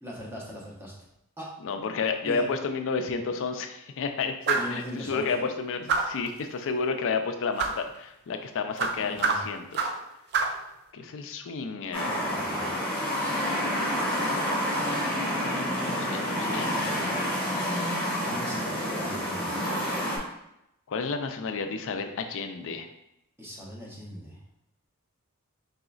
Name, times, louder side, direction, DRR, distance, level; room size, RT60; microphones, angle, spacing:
voice 1, 0.0-0.9 1.4-1.5 2.2-2.5 4.5-5.3 9.0-9.4 12.3-12.6 18.2-19.8 23.4-24.4, equal, 10° right, -4 dB, 0.9 m, -39 dB
voice 2, 1.6-9.9 10.9-12.3 15.4-16.7 20.9-22.9, left 4 dB, 60° left, 6 dB, 0.4 m, -31 dB
sound 1, 4.5-4.8 5.9-6.3 7.6-7.8 8.8-10.0 10.3-10.6, right 4 dB, 50° right, 0.4 m, -27 dB
sound 2, 11.9-20.2, equal, 10° left, 1.2 m, -28 dB
4.1 x 3.9 x 2.4 m, 0.84 s
head